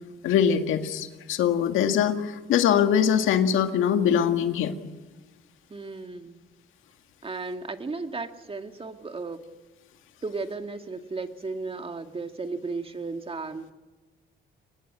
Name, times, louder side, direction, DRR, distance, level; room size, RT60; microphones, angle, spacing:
voice 1, 0.2-4.7, left 8 dB, 85° left, 7 dB, 1.9 m, -22 dB
voice 2, 5.7-6.4 7.2-9.4 10.2-13.7, right 3 dB, 30° right, 6 dB, 2.1 m, -35 dB
23.0 x 21.0 x 9.8 m, 1.2 s
cardioid pair, 90°, 20 cm